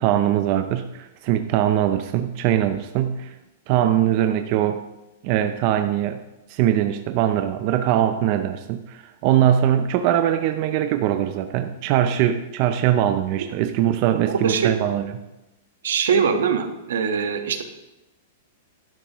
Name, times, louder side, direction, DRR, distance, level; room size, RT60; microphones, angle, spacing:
voice 1, 0.0-3.3 3.7-4.8 5.2-6.2 6.5-15.1, right 11 dB, 35° right, 8 dB, 0.5 m, -21 dB
voice 2, 14.3-14.7 15.8-17.6, right 6 dB, 80° right, 7 dB, 1.3 m, -22 dB
11.5 x 11.0 x 3.0 m, 0.99 s
supercardioid pair, 170°, 0 cm